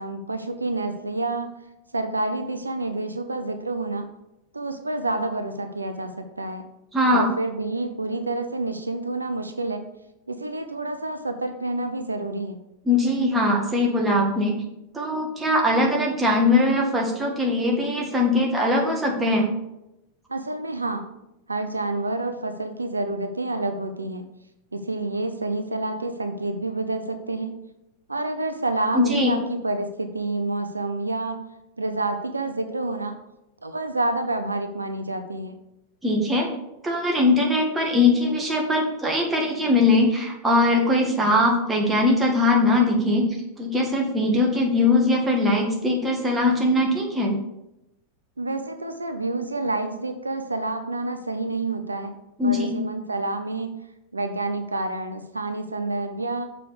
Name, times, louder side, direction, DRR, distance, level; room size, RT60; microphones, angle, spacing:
voice 1, 0.0-1.5 1.9-4.1 4.5-6.7 7.1-9.8 10.3-12.6 20.3-21.0 21.5-24.3 24.7-27.6 28.1-31.4 31.8-33.2 33.6-35.6 48.4-52.1 52.4-53.8 54.1-56.5, right 2 dB, 80° right, 8 dB, 0.6 m, -28 dB
voice 2, 6.9-7.3 12.9-14.6 14.9-19.5 28.9-29.4 36.0-36.5 36.8-43.2 43.6-47.3 52.4-52.8, left 2 dB, 10° right, -1 dB, 1.9 m, -21 dB
6.8 x 4.8 x 6.6 m, 0.90 s
figure-of-eight pair, 90°, 0 cm